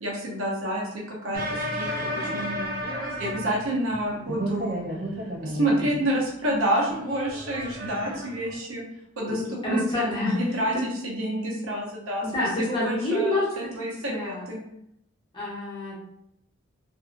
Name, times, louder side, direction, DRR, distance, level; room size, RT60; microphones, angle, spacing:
voice 1, 0.0-2.7 3.2-4.8 5.2-8.8 9.2-10.7 11.0-14.6, right 1 dB, 75° right, -2 dB, 0.8 m, -29 dB
sound 1, 1.3-4.0 4.3-6.1 6.9-8.6, equal, 40° right, 0.5 m, -32 dB
voice 2, 9.3-10.4 10.7-10.8 12.2-13.7 14.1-14.5 15.3-16.1, left 1 dB, 20° left, -6 dB, 0.8 m, -28 dB
2.6 x 2.5 x 2.4 m, 0.76 s
head